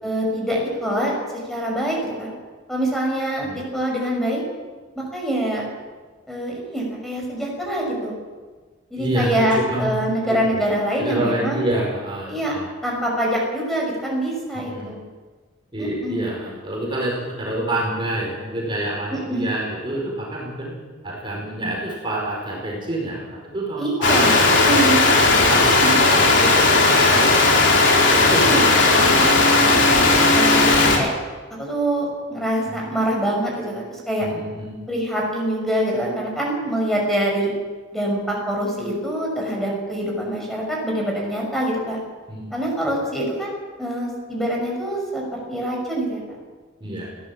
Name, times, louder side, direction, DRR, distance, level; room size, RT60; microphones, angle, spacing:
voice 1, 0.0-2.3 2.7-4.4 4.9-5.6 6.3-8.2 8.9-11.6 12.3-12.5 12.8-15.0 15.8-16.4 19.1-19.5 23.8-25.1 25.6-25.9 28.3-29.3 29.8-30.0 30.3-31.1 31.6-34.3 34.9-37.5 37.9-42.0 42.5-46.2, right 1 dB, ahead, -2 dB, 6.2 m, -25 dB
voice 2, 9.0-9.9 10.3-10.6 11.0-12.7 14.5-14.9 15.7-20.8 21.0-24.9 25.5-27.3 28.1-28.4 32.7-32.9 34.2-34.8 42.3-42.6 46.8-47.1, right 1 dB, 25° right, -2 dB, 4.9 m, -27 dB
sound 1, 24.0-31.0, left 3 dB, 60° left, 4.1 m, -16 dB
21.5 x 16.0 x 7.5 m, 1.4 s
head